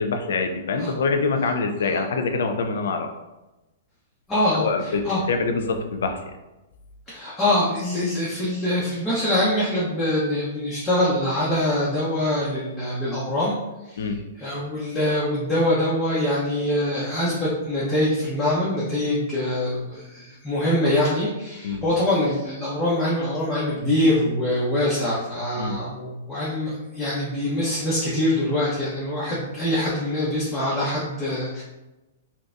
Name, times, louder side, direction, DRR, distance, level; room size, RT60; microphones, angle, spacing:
voice 1, 0.0-3.1 4.5-6.2 14.0-14.2 21.6-21.8 25.6-25.8, left 4 dB, 75° left, 6 dB, 0.4 m, -25 dB
voice 2, 4.3-5.2 7.1-13.5 13.8-31.6, left 1 dB, 10° left, -9 dB, 0.8 m, -24 dB
3.9 x 2.2 x 2.5 m, 1.0 s
hypercardioid pair, 125°, 0 cm